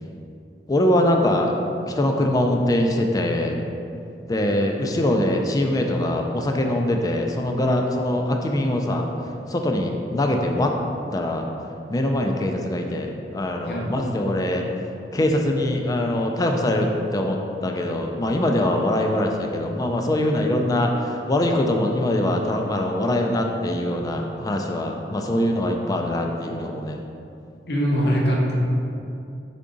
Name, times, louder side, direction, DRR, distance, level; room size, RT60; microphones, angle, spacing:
voice 1, 0.7-1.5 1.8-3.6 4.3-9.1 9.5-10.7 11.1-11.5 11.9-14.7 15.1-27.0, left 1 dB, 20° left, 2 dB, 0.3 m, -23 dB
voice 2, 13.6-14.0 27.7-28.5, equal, 65° left, -3 dB, 0.7 m, -22 dB
3.8 x 3.6 x 3.8 m, 2.7 s
head